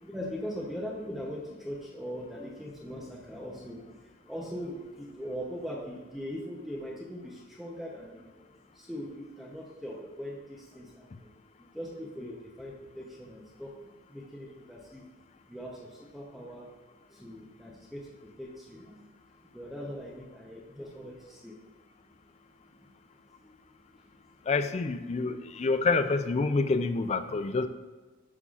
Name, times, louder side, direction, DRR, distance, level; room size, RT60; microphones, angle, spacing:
voice 1, 0.0-11.3 11.6-15.0 15.5-16.7 17.1-19.0 19.4-21.9 23.4-24.2, equal, ahead, -3 dB, 0.8 m, -41 dB
voice 2, 24.5-27.7, left 3 dB, 30° left, 10 dB, 0.3 m, -27 dB
11.0 x 5.6 x 2.4 m, 1.3 s
head